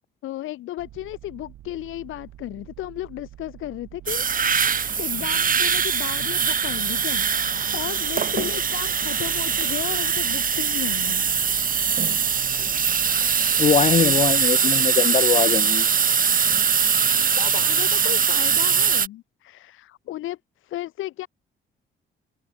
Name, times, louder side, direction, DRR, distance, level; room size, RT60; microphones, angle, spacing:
voice 1, 0.2-11.2 17.4-21.3, left 15 dB, 85° left, 6.0 m, -34 dB
sound 1, 0.8-14.5, right 13 dB, 80° right, 6.7 m, -45 dB
sound 2, 4.1-19.1, right 6 dB, 45° right, 3.8 m, -22 dB
voice 2, 13.6-15.9, left 7 dB, 35° left, 0.8 m, -21 dB
open air
cardioid pair, 90°, 20 cm